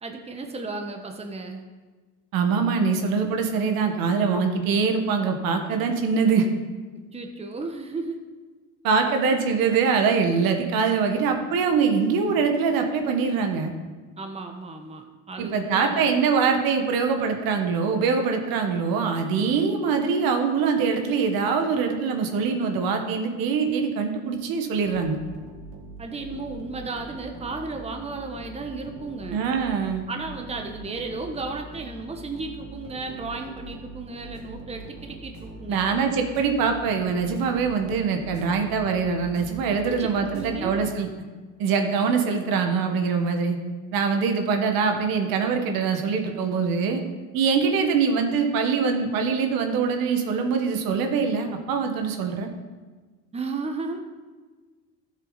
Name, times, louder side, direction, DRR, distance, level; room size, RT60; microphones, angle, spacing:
voice 1, 0.0-1.6 7.1-8.2 14.2-16.0 26.0-29.4 30.1-35.9 39.7-40.7 53.3-54.0, right 3 dB, 15° right, 4 dB, 1.2 m, -34 dB
voice 2, 2.3-6.5 8.8-13.7 15.4-25.2 29.3-30.0 35.7-41.1 41.6-43.6 43.9-47.0 47.3-52.5, right 5 dB, 65° right, 5 dB, 1.6 m, -23 dB
sound 1, 24.8-41.3, right 2 dB, 35° right, 2.4 m, -43 dB
12.5 x 7.4 x 4.1 m, 1.3 s
supercardioid pair, 90°, 38 cm